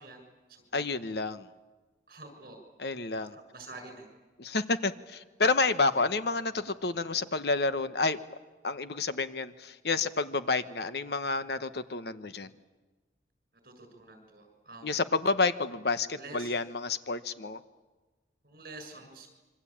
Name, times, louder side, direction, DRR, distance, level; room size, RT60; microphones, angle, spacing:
voice 1, 0.0-0.8 2.1-2.6 3.3-4.1 13.6-15.0 16.2-16.5 18.4-19.3, right 2 dB, 50° right, 6 dB, 6.7 m, -48 dB
voice 2, 0.7-1.5 2.8-3.4 4.4-8.2 8.6-12.5 14.8-17.6, left 3 dB, 65° left, 11 dB, 1.1 m, -29 dB
26.5 x 24.5 x 8.7 m, 1.2 s
head